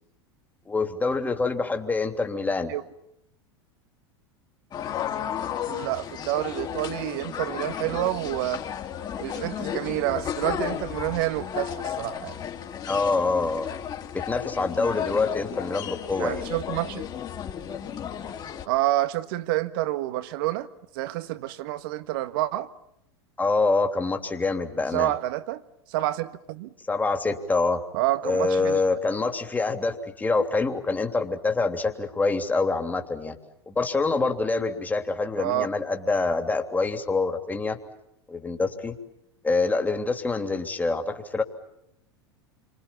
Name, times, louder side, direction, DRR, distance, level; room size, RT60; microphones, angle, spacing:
voice 1, 0.7-2.7 12.9-13.7 14.1-16.4 23.4-25.1 26.9-27.8 28.2-33.4 33.7-37.8 38.3-39.0 39.4-41.4, left 3 dB, 10° left, 3.2 m, -26 dB
sound 1, 4.7-18.6, left 9 dB, 30° left, 3.5 m, -33 dB
voice 2, 5.7-8.6 9.2-12.4 16.2-17.1 18.7-20.7 20.9-22.7 24.9-25.6 25.9-26.7 27.9-28.8 35.4-35.7, right 16 dB, 55° right, 1.6 m, -28 dB
29.5 x 25.5 x 7.3 m
figure-of-eight pair, 85°, 14 cm